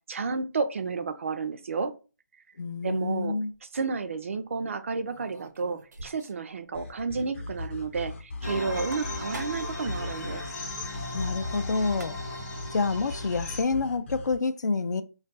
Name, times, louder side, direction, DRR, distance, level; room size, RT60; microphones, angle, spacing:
voice 1, 0.1-1.9 2.8-3.4 3.7-10.5, right 4 dB, 45° right, 0.4 m, -31 dB
voice 2, 2.6-3.5 11.1-12.2 12.7-15.0, left 4 dB, 85° left, 0.4 m, -28 dB
sound 1, 3.3-3.6 5.1-6.5 6.8-6.9 7.2-7.3 8.7-9.8 11.6-11.7 11.9-12.5, right 2 dB, 80° right, 0.7 m, -46 dB
sound 2, 6.7-14.4, left 2 dB, 40° left, 0.8 m, -38 dB
sound 3, 8.4-13.6, left 2 dB, 10° left, 0.5 m, -37 dB
2.4 x 2.2 x 3.8 m
hypercardioid pair, 165°, 9 cm